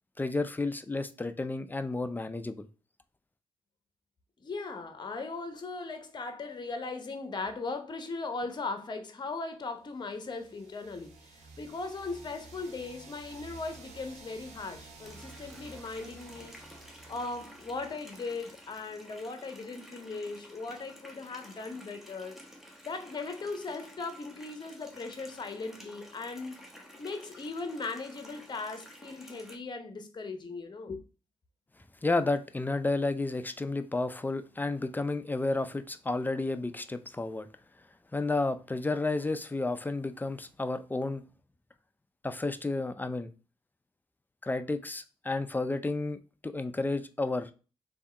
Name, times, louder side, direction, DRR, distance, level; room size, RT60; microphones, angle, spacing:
voice 1, 0.2-2.7 32.0-37.5 38.1-41.2 42.2-43.3 44.4-46.2 46.4-47.5, left 2 dB, 15° left, 0.5 m, -31 dB
voice 2, 4.4-16.5 17.1-22.4 22.8-26.6 27.0-31.0, left 3 dB, 40° left, 0.9 m, -38 dB
sound 1, 10.0-18.8, right 3 dB, 75° right, 1.1 m, -52 dB
Water tap faucet, 15.0-29.5, equal, 5° right, 1.1 m, -52 dB
3.4 x 2.8 x 4.4 m
cardioid pair, 65°, 11 cm